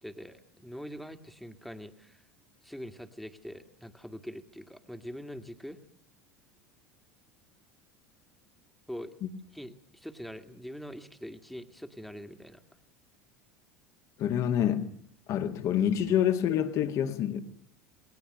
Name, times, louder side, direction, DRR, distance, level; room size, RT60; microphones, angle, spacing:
voice 1, 0.0-2.3 2.6-5.8 8.9-9.2 9.5-12.6, equal, ahead, 2.0 m, -43 dB
voice 2, 14.2-14.9 15.3-17.4, left 10 dB, 45° left, 2.0 m, -27 dB
28.5 x 20.5 x 6.7 m
figure-of-eight pair, 70°, 7 cm